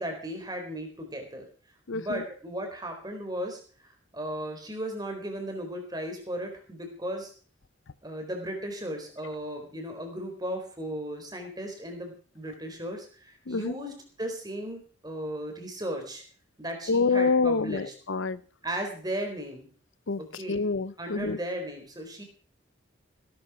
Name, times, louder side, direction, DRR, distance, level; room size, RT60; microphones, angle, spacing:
voice 1, 0.0-1.5 1.9-7.3 8.0-16.2 16.6-17.9 18.6-19.7 20.4-20.6 21.0-22.2, right 1 dB, 20° right, 4 dB, 4.1 m, -36 dB
voice 2, 1.9-2.2 13.5-13.8 16.9-18.4 20.1-21.4, left 4 dB, 75° left, 17 dB, 0.7 m, -27 dB
17.5 x 12.0 x 5.0 m, 0.42 s
head